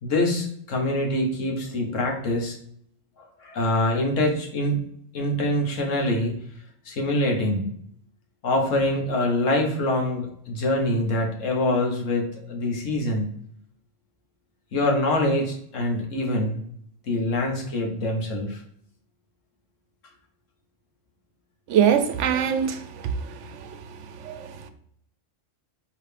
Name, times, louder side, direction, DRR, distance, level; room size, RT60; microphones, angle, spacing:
voice 1, 0.0-2.5 3.2-4.8 5.1-6.4 6.8-7.7 8.4-13.3 14.7-16.6 17.1-18.6, left 1 dB, 85° left, 1 dB, 1.4 m, -25 dB
voice 2, 21.7-23.1 23.5-23.6 24.2-24.7, right 8 dB, 75° right, 9 dB, 0.9 m, -23 dB
4.8 x 3.2 x 3.3 m, 0.66 s
omnidirectional pair, 1.3 m